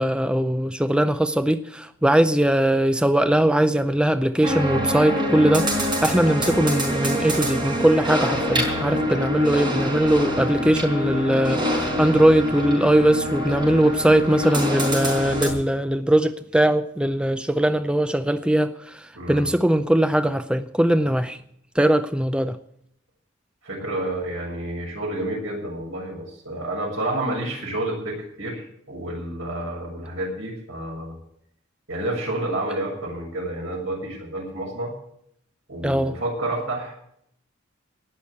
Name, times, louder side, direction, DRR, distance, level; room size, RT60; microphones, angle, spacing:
voice 1, 0.0-21.4 21.7-22.6 35.8-36.2, right 1 dB, 5° right, 0.5 m, -20 dB
sound 1, 4.4-15.5, equal, 25° right, 4.5 m, -25 dB
voice 2, 19.2-19.5 23.6-31.2 31.9-34.9 35.7-36.9, right 1 dB, 80° right, 6.9 m, -29 dB
19.0 x 6.4 x 8.5 m
head